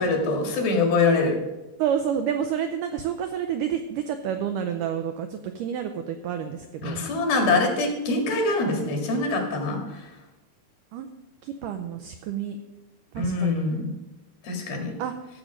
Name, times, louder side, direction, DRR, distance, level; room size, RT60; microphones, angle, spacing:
voice 1, 0.0-1.4 6.8-10.0 13.2-13.9 14.4-14.9, left 3 dB, 70° left, 2 dB, 3.7 m, -24 dB
voice 2, 1.8-7.0 10.9-11.1 11.4-12.6 13.1-13.7 15.0-15.2, right 8 dB, 85° right, 7 dB, 1.8 m, -29 dB
13.5 x 7.4 x 5.1 m, 1.0 s
omnidirectional pair, 4.4 m